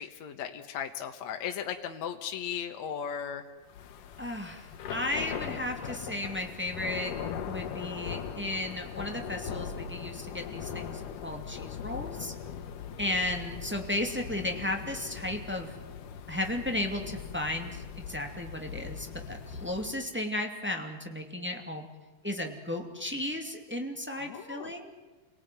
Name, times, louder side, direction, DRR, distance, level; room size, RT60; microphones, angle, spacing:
voice 1, 0.0-3.4 24.2-24.7, left 8 dB, 65° left, 5 dB, 2.4 m, -36 dB
Thunder / Rain, 3.7-20.0, left 7 dB, 80° left, 3.0 m, -40 dB
voice 2, 4.2-7.1 7.4-12.3 13.0-15.7 16.3-21.9 22.2-24.9, left 1 dB, 5° right, 3 dB, 2.0 m, -34 dB
29.0 x 18.5 x 9.4 m, 1.2 s
omnidirectional pair, 3.7 m